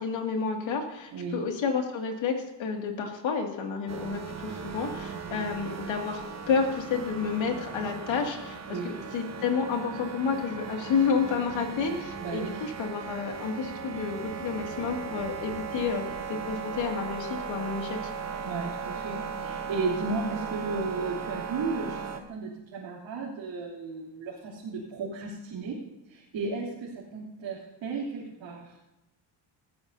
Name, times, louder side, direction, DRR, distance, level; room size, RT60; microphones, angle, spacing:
voice 1, 0.0-6.2 6.5-18.1, left 5 dB, 85° left, 2 dB, 2.5 m, -30 dB
sound 1, 3.9-22.2, right 6 dB, 35° right, 1.1 m, -37 dB
voice 2, 8.7-9.0 12.2-12.7 18.4-25.8 26.1-28.7, right 4 dB, 90° right, -6 dB, 3.3 m, -34 dB
19.5 x 15.0 x 2.8 m, 0.96 s
cardioid pair, 120°, 45 cm